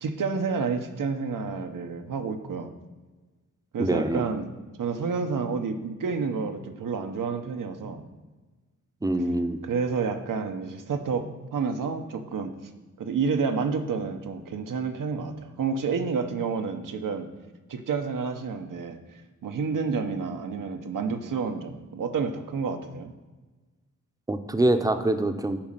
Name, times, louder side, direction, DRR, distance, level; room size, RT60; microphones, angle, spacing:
voice 1, 0.0-2.7 3.7-4.5 4.8-8.0 9.6-11.3 11.5-12.5 13.0-17.3 17.7-19.0 19.4-23.1, right 5 dB, 90° right, 5 dB, 0.9 m, -29 dB
voice 2, 3.8-4.2 9.0-9.6 24.3-25.6, right 1 dB, 10° right, 8 dB, 0.6 m, -24 dB
9.0 x 5.3 x 7.4 m, 1.2 s
wide cardioid pair, 140°, 31 cm